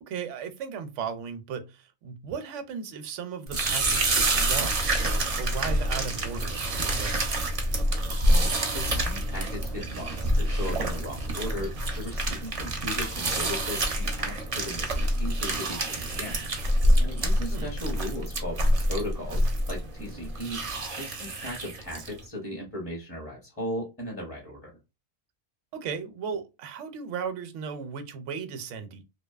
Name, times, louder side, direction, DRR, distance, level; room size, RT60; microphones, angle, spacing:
voice 1, 0.0-7.2 17.5-17.7 25.7-29.0, right 6 dB, 80° right, 0.9 m, -36 dB
sound 1, 3.5-22.2, right 1 dB, 45° right, 0.5 m, -27 dB
voice 2, 8.7-16.4 17.0-20.6 21.0-24.7, equal, 15° left, 0.6 m, -37 dB
2.6 x 2.2 x 2.3 m
omnidirectional pair, 1.2 m